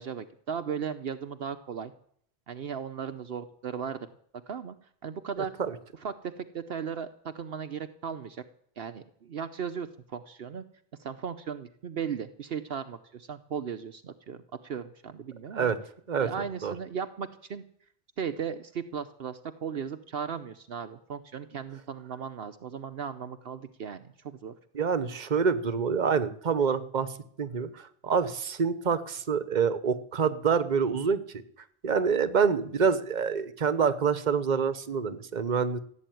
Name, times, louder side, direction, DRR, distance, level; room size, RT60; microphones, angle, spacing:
voice 1, 0.0-1.9 2.5-4.0 4.5-4.8 5.0-5.5 6.0-8.4 8.8-10.7 11.0-15.7 16.2-17.7 18.2-24.5, right 7 dB, 65° right, 10 dB, 1.0 m, -36 dB
voice 2, 5.4-5.7 15.5-15.8 16.1-16.3 16.6-16.7 24.7-27.1 27.4-31.2 31.8-35.8, right 6 dB, 45° right, 13 dB, 1.1 m, -26 dB
16.0 x 8.3 x 9.3 m, 0.64 s
omnidirectional pair, 1.1 m